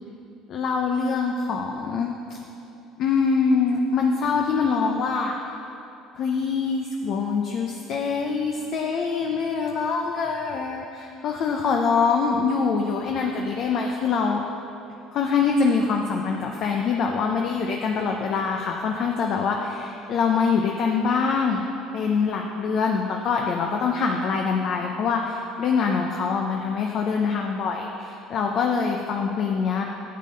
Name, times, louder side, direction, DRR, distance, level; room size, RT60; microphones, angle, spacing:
voice 1, 0.5-2.4 3.0-5.3 6.2-14.4 15.1-21.6 21.9-29.8, left 5 dB, 60° left, 1 dB, 0.7 m, -24 dB
9.3 x 7.7 x 5.2 m, 2.8 s
supercardioid pair, 80°, 0 cm